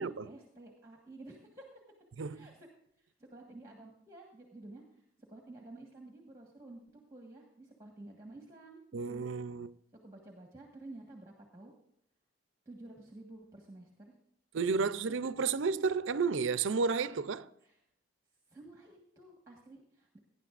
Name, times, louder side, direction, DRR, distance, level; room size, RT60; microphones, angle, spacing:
voice 1, 0.0-1.7 2.3-2.5 3.0-5.0 5.3-9.3 10.0-11.7 12.6-14.1 14.6-15.5 17.6-17.8 18.5-20.2, right 2 dB, 15° right, 1.4 m, -51 dB
voice 2, 8.9-9.7 14.5-17.5, right 5 dB, 75° right, 0.5 m, -32 dB
18.0 x 10.5 x 2.5 m
head